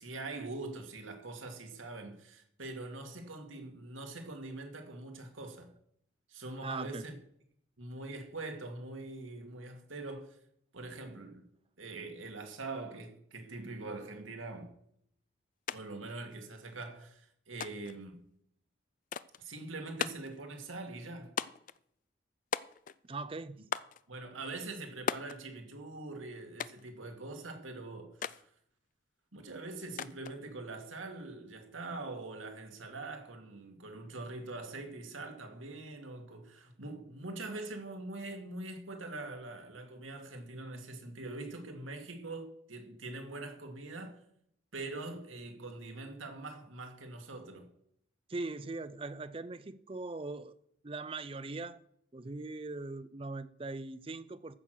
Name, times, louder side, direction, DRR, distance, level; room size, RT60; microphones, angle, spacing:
voice 1, 0.0-5.7 6.3-7.1 7.8-10.4 10.7-11.5 11.8-14.7 15.7-18.2 19.4-21.3 24.1-28.5 29.3-44.2 44.7-47.7, right 2 dB, 85° right, 2.1 m, -43 dB
voice 2, 6.6-7.0 23.0-23.6 48.3-50.6 50.8-51.8 52.1-54.6, right 3 dB, 25° right, 0.5 m, -40 dB
sound 1, 15.7-15.8 16.1-16.8 17.6-18.0 19.1-19.4 20.0-20.4 21.4-21.8 22.5-23.1 23.7-24.0 25.1-25.4 26.6-26.9 28.2-28.4 30.0-30.4, left 7 dB, 40° left, 0.3 m, -37 dB
14.5 x 6.5 x 6.1 m
head